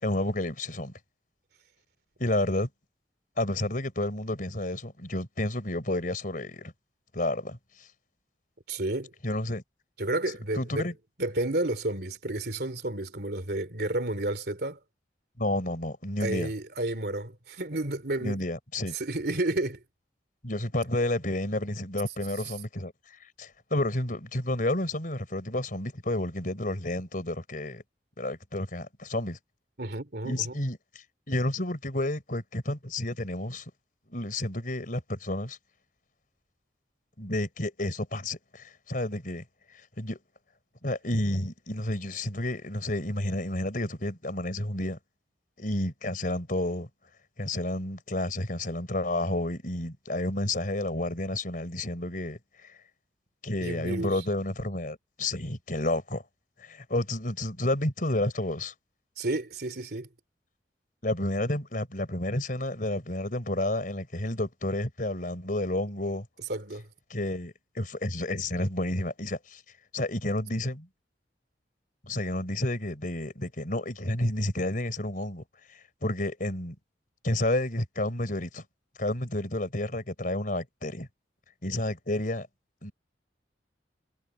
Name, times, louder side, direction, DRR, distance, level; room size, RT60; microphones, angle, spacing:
voice 1, 0.0-0.9 2.2-2.7 3.4-6.7 7.1-7.6 9.2-9.6 10.6-10.9 15.4-16.5 18.2-18.9 20.4-22.9 23.4-27.8 28.2-29.4 30.2-30.8 31.3-33.6 34.1-35.6 37.2-39.4 40.0-40.2 40.8-45.0 45.6-46.9 47.4-52.4 53.4-56.2 56.6-58.7 61.0-66.3 67.1-69.6 69.9-70.9 72.1-75.4 76.0-76.8 77.2-78.6 79.0-81.1 81.6-82.5 82.8-82.9, left 1 dB, 50° left, 4.5 m, -30 dB
voice 2, 8.7-9.1 10.0-10.9 11.2-14.8 16.2-18.4 18.9-19.8 29.8-30.5 53.6-54.2 59.2-60.1 66.5-66.9, right 2 dB, 60° right, 3.1 m, -31 dB
head